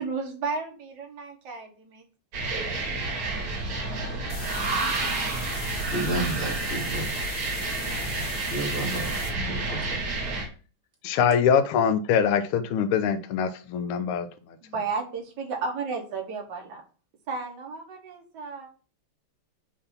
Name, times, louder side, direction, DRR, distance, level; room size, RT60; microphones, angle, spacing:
voice 1, 0.0-2.0 14.6-16.8 17.3-18.7, right 4 dB, 55° right, 1 dB, 1.8 m, -33 dB
sound 1, 2.3-10.5, right 2 dB, 70° right, 2.6 m, -30 dB
sound 2, 4.3-9.3, left 3 dB, 40° left, 1.1 m, -39 dB
voice 2, 5.9-7.0 8.5-9.1 9.4-10.0, right 2 dB, 25° right, -1 dB, 2.1 m, -31 dB
voice 3, 11.0-14.3, left 7 dB, 80° left, 8 dB, 1.5 m, -23 dB
6.7 x 2.8 x 5.5 m, 0.37 s
omnidirectional pair, 2.4 m